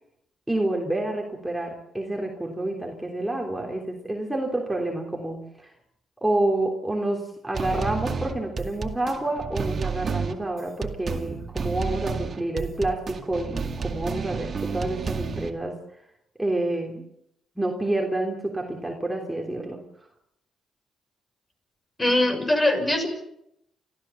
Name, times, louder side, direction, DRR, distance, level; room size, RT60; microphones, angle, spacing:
voice 1, 0.5-5.7 6.2-15.8 16.4-17.1 17.6-19.8, right 1 dB, 5° right, 0 dB, 3.4 m, -28 dB
sound 1, 7.5-15.5, right 5 dB, 45° right, 2.1 m, -31 dB
voice 2, 22.0-23.1, left 1 dB, 20° left, 6 dB, 6.0 m, -21 dB
29.5 x 14.0 x 7.1 m, 0.77 s
cardioid pair, 90°, 0 cm